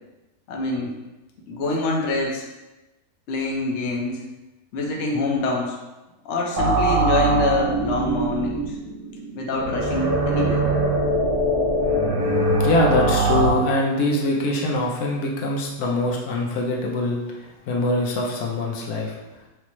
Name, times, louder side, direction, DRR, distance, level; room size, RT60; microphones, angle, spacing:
voice 1, 0.5-0.9 1.5-2.4 3.3-4.2 4.7-5.8 6.2-8.8 9.4-10.7, left 2 dB, 60° left, -1 dB, 0.8 m, -25 dB
sound 1, 6.6-13.5, right 2 dB, 80° right, 1.1 m, -22 dB
voice 2, 12.6-19.2, left 1 dB, 75° left, -2 dB, 1.1 m, -23 dB
4.8 x 2.0 x 3.0 m, 1.0 s
omnidirectional pair, 1.6 m